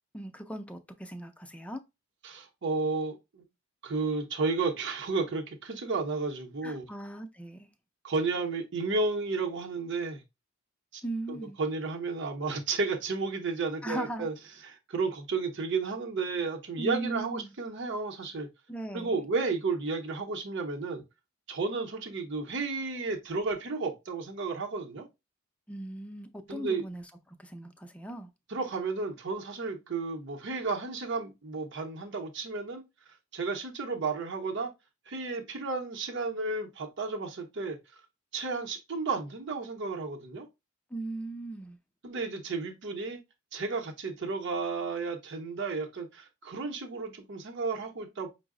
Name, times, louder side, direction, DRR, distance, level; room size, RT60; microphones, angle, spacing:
voice 1, 0.1-1.8 6.6-7.7 11.0-11.6 13.8-14.3 16.8-17.5 18.7-19.1 25.7-28.3 40.9-41.8, right 1 dB, 5° left, 0.4 m, -38 dB
voice 2, 2.2-3.4 3.8-6.8 8.0-10.2 10.9-11.0 11.3-14.3 14.6-18.5 18.9-21.0 21.5-25.1 26.5-26.8 28.5-32.8 33.3-34.7 35.1-37.8 38.3-40.5 42.0-43.2 43.5-48.3, right 4 dB, 60° right, 0.8 m, -32 dB
5.4 x 2.0 x 3.6 m
head